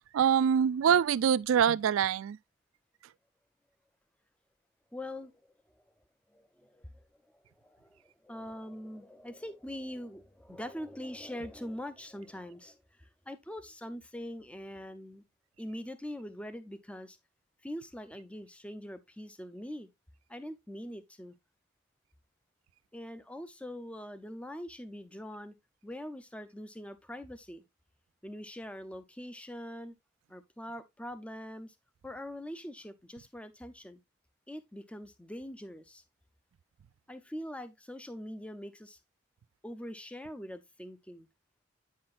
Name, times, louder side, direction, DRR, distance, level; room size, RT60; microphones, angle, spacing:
voice 1, 0.1-2.4, right 8 dB, 90° right, 0.3 m, -24 dB
voice 2, 4.9-5.5 6.3-7.0 7.3-15.2 15.6-17.2 17.6-19.9 20.3-21.3 22.9-25.5 25.8-27.6 28.2-29.9 30.3-31.7 32.0-34.0 34.5-36.0 37.1-39.0 39.6-41.3, equal, 5° left, 0.6 m, -43 dB
8.7 x 5.7 x 2.4 m
head